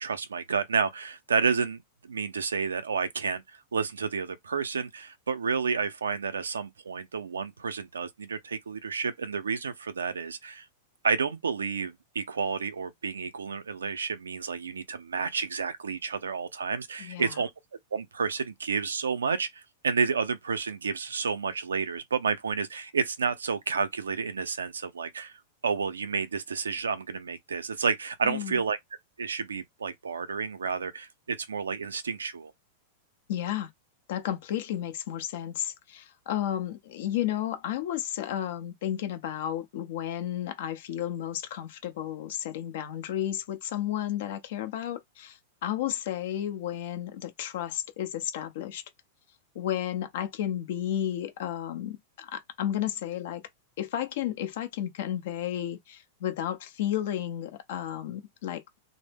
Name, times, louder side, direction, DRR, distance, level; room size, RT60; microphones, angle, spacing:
voice 1, 0.0-3.4 3.7-10.7 11.0-17.5 17.9-28.8 29.2-32.5, right 5 dB, 85° right, 0.4 m, -30 dB
voice 2, 17.0-17.4 28.2-28.6 33.3-33.7 34.1-48.8 49.5-53.4 53.8-58.6, left 11 dB, 65° left, 0.5 m, -32 dB
2.0 x 2.0 x 3.3 m
hypercardioid pair, 105°, 0 cm